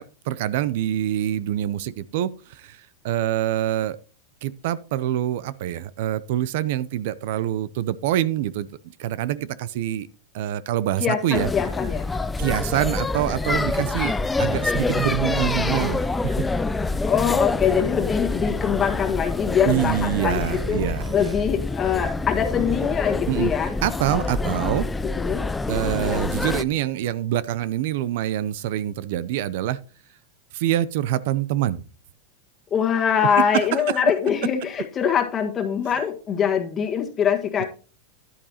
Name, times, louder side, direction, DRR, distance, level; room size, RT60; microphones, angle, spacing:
voice 1, 0.0-4.0 4.4-8.7 9.0-10.1 10.3-11.5 12.4-14.1 14.4-16.5 19.7-21.4 23.3-23.5 23.8-24.9 25.7-29.8 30.5-31.8 33.5-34.0, right 12 dB, 65° right, 0.5 m, -25 dB
voice 2, 11.0-12.1 17.1-20.8 21.1-23.7 25.0-25.4 32.7-37.6, left 8 dB, 25° left, 1.6 m, -23 dB
sound 1, 11.3-26.6, left 3 dB, 10° left, 0.4 m, -26 dB
11.0 x 8.8 x 2.9 m
supercardioid pair, 130°, 0 cm